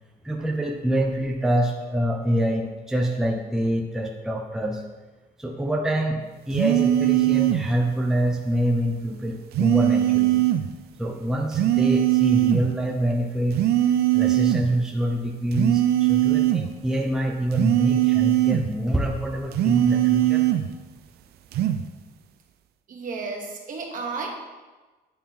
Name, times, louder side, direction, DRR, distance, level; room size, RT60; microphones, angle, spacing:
voice 1, 0.2-4.8 5.4-10.4 11.0-13.6 14.1-20.5, right 1 dB, 5° right, 0 dB, 0.5 m, -25 dB
sound 1, 6.5-7.7 9.5-10.7 11.5-12.7 13.5-14.7 15.5-16.7 17.5-18.7 19.5-20.7 21.5-21.8, right 14 dB, 70° right, 0.4 m, -20 dB
voice 2, 22.9-24.3, right 4 dB, 50° right, 1 dB, 1.1 m, -32 dB
9.2 x 3.5 x 2.9 m, 1.2 s
cardioid pair, 105°, 17 cm